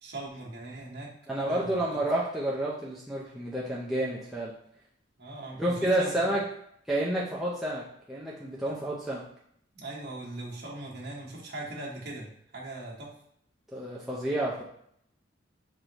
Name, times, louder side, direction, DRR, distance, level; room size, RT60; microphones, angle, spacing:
voice 1, 0.0-2.0 5.2-6.4 8.6-8.7 9.7-12.3 12.5-13.1, right 2 dB, 55° right, -4 dB, 1.1 m, -40 dB
voice 2, 1.3-4.5 5.6-6.4 6.9-9.3 13.7-14.6, right 1 dB, ahead, -7 dB, 0.5 m, -30 dB
4.8 x 2.6 x 2.9 m, 0.70 s
head